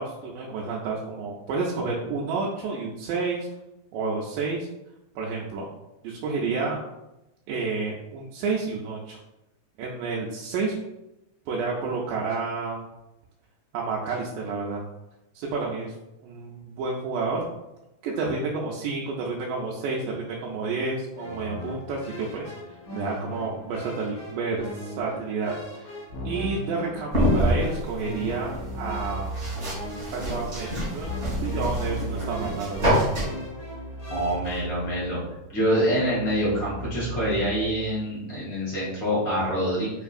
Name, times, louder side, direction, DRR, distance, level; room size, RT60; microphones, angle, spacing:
voice 1, 0.0-3.5 3.9-4.7 5.2-5.7 6.0-6.8 7.5-9.2 9.8-10.7 11.5-12.8 13.7-14.9 15.3-15.9 16.2-17.5 18.0-22.5 22.9-25.9 26.3-29.3 30.1-31.1 31.4-32.9, right 4 dB, 85° right, -3 dB, 2.1 m, -30 dB
sound 1, 21.1-34.9, equal, 50° left, 1.3 m, -41 dB
Keyboard (musical), 26.1-26.7 28.2-29.8 31.0-38.0, right 1 dB, 70° left, 1.4 m, -36 dB
sound 2, 27.1-33.3, equal, 50° right, 0.8 m, -27 dB
voice 2, 34.1-35.2 35.5-39.9, equal, 85° left, -8 dB, 0.7 m, -25 dB
5.3 x 2.5 x 2.4 m, 0.94 s
omnidirectional pair, 3.7 m